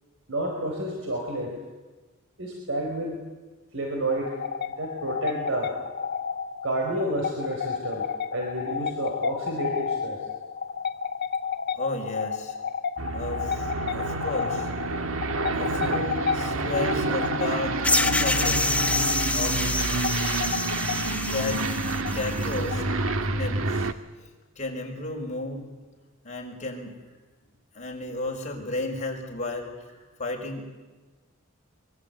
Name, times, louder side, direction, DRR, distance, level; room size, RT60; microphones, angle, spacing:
voice 1, 0.3-1.6 2.4-3.2 3.7-4.4 4.8-5.7 6.6-8.1 8.3-10.3, right 1 dB, 70° right, 1 dB, 4.8 m, -30 dB
sound 1, 4.1-23.5, left 6 dB, 50° left, 1.1 m, -32 dB
voice 2, 11.7-12.5 13.1-14.7 15.5-18.7 19.3-19.7 21.3-23.9 24.2-24.3 24.6-25.6 26.2-26.9 27.7-29.9 30.2-30.6, left 2 dB, 35° left, 0 dB, 5.7 m, -33 dB
Aircraft, 13.0-23.9, right 3 dB, 85° right, 1.5 m, -28 dB
sound 2, 17.8-22.6, left 2 dB, 5° left, 1.2 m, -27 dB
24.0 x 23.5 x 9.4 m, 1.2 s
head